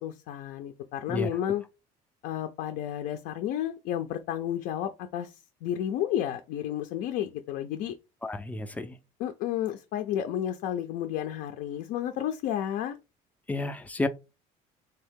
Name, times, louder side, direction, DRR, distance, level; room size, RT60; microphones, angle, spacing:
voice 1, 0.0-1.6 2.2-7.9 9.2-13.0, left 10 dB, 70° left, 0.5 m, -32 dB
voice 2, 8.2-9.0 13.5-14.1, left 2 dB, 10° left, 0.3 m, -31 dB
3.4 x 2.8 x 3.5 m
cardioid pair, 145°, 15 cm